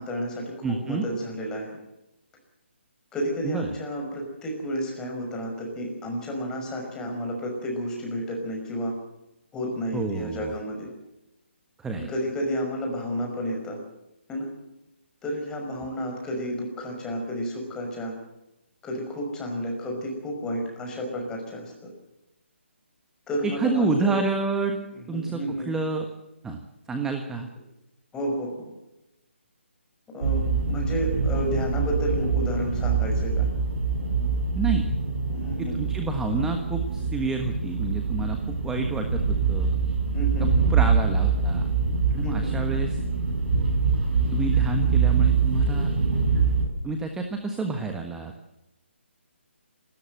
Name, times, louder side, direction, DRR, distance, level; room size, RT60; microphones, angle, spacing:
voice 1, 0.0-1.7 3.1-8.9 9.5-10.9 12.0-13.8 14.3-14.5 15.2-18.2 18.8-21.7 23.3-24.2 25.1-25.7 28.1-28.5 30.1-33.5 35.3-35.8 40.1-40.7 42.2-42.5, equal, 10° left, 1 dB, 5.8 m, -31 dB
voice 2, 0.6-1.0 3.4-3.7 9.9-10.5 11.8-12.1 23.4-24.8 25.1-26.1 26.4-26.6 26.9-27.5 34.5-34.9 35.6-39.8 40.4-41.7 42.1-43.0 44.3-45.9 46.8-48.3, right 3 dB, 5° right, 5 dB, 1.4 m, -29 dB
sound 1, 30.2-46.7, right 5 dB, 50° right, 7.5 m, -24 dB
27.5 x 13.5 x 7.9 m, 0.93 s
figure-of-eight pair, 145°, 7 cm